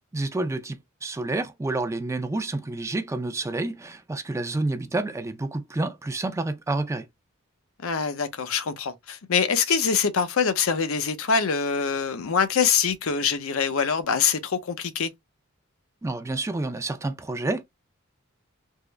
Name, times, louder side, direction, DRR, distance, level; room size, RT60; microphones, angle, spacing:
voice 1, 0.1-7.1 16.0-17.6, right 2 dB, 15° right, 0.4 m, -29 dB
voice 2, 7.8-15.1, left 6 dB, 75° left, 0.6 m, -24 dB
3.6 x 2.0 x 3.1 m
head